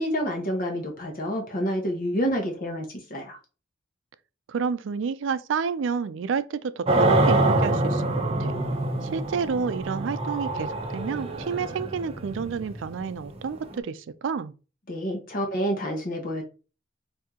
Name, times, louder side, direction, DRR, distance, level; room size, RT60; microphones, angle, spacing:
voice 1, 0.0-3.4 14.9-16.4, equal, 45° left, 0.9 m, -28 dB
voice 2, 4.5-8.5 9.0-14.5, right 6 dB, 70° right, 0.4 m, -30 dB
sound 1, 6.9-13.8, right 2 dB, 30° right, 0.6 m, -25 dB
4.3 x 2.7 x 3.6 m
head